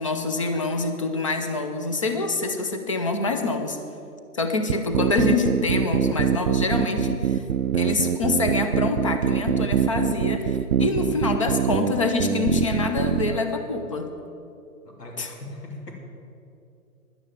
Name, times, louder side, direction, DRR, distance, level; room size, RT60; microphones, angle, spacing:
voice 1, 0.0-3.8 4.3-7.4 7.7-14.1 15.2-15.3, left 3 dB, 20° left, 6 dB, 0.6 m, -26 dB
sound 1, 4.7-13.4, right 8 dB, 55° right, 0.5 m, -23 dB
voice 2, 10.8-11.2 14.8-15.9, left 1 dB, 85° left, 0 dB, 3.2 m, -39 dB
11.0 x 9.9 x 7.2 m, 2.7 s
figure-of-eight pair, 145°, 47 cm